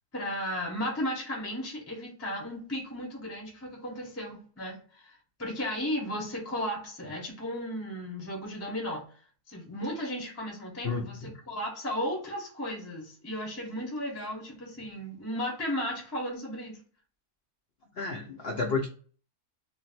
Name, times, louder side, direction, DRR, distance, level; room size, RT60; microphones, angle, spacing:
voice 1, 0.1-9.0 9.5-16.8, equal, 15° left, 0.6 m, -35 dB
voice 2, 10.8-11.3 17.9-18.9, left 4 dB, 70° left, 0.5 m, -31 dB
2.6 x 2.0 x 4.0 m
omnidirectional pair, 1.6 m